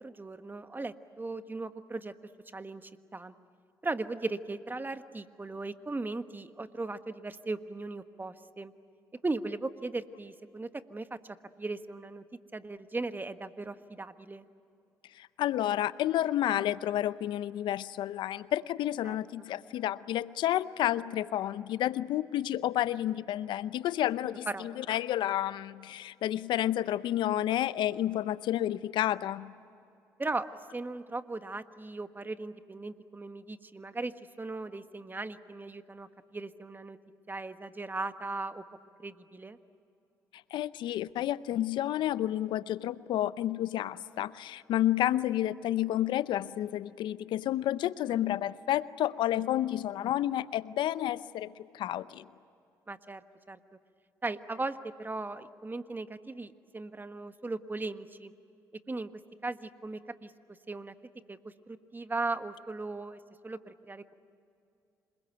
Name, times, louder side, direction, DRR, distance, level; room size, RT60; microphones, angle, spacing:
voice 1, 0.0-2.1 2.5-3.3 3.8-8.7 9.2-11.2 11.6-12.2 12.5-14.4 19.0-19.2 24.5-24.7 30.2-30.5 30.7-37.0 37.3-38.6 39.0-39.6 52.9-53.6 54.2-58.3 58.9-59.1 59.4-60.3 60.7-60.9 61.3-64.1, right 3 dB, 25° right, 10 dB, 1.4 m, -38 dB
voice 2, 15.1-29.5 40.5-52.3, left 12 dB, 70° left, 17 dB, 0.6 m, -30 dB
27.0 x 21.5 x 9.2 m, 2.6 s
hypercardioid pair, 55°, 8 cm